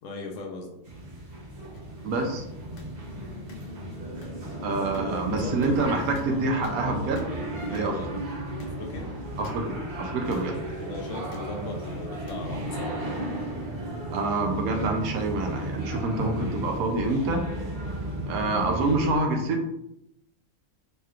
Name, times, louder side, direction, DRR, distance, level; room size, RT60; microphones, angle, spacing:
voice 1, 0.0-0.8 4.6-6.1 7.7-8.1 8.6-9.1 10.8-13.1, left 2 dB, 70° left, 1 dB, 0.9 m, -38 dB
sound 1, 0.8-19.2, right 1 dB, 50° right, 0.9 m, -34 dB
sound 2, 1.7-1.8 2.8-2.9 3.5-3.6 4.2-4.3 4.9-5.0 5.6-5.7 6.2-6.3 6.6-6.8 7.2-7.3 7.7-7.9 8.6-8.7 9.4-9.6 10.3-10.4 11.3-11.5 12.3-12.4 13.2-13.4, left 2 dB, 90° left, 1.2 m, -47 dB
voice 2, 2.0-2.4 4.6-7.2 7.7-7.9 9.4-10.6 14.1-17.4 18.3-19.7, right 2 dB, 75° right, 2 dB, 1.0 m, -27 dB
3.2 x 3.0 x 2.3 m, 0.80 s
omnidirectional pair, 1.5 m